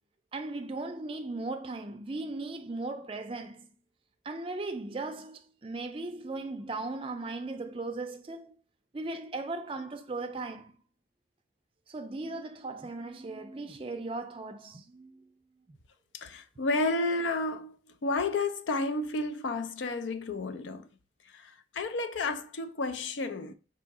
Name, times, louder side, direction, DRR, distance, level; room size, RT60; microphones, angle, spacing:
voice 1, 0.3-3.7 4.2-8.6 8.9-10.7 11.9-15.3 15.7-15.8, right 2 dB, 30° right, 0.4 m, -37 dB
voice 2, 16.1-17.8 18.0-20.9 21.3-23.5, left 2 dB, 80° left, 0.5 m, -31 dB
3.6 x 2.7 x 4.0 m
head